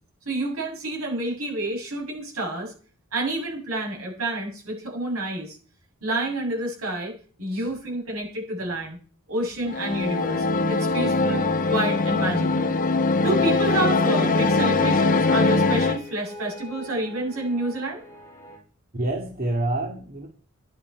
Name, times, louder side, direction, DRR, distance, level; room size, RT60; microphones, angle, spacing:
voice 1, 0.3-2.7 3.1-5.6 6.0-7.1 7.4-9.0 9.3-12.7 13.2-18.0, right 1 dB, 75° right, 0 dB, 7.2 m, -29 dB
sound 1, 9.7-16.0, left 3 dB, 40° left, 0.8 m, -22 dB
sound 2, 10.3-18.6, left 1 dB, 15° left, 3.8 m, -43 dB
voice 2, 18.9-20.3, right 2 dB, 45° right, -1 dB, 2.3 m, -27 dB
14.0 x 11.0 x 4.7 m, 0.41 s
head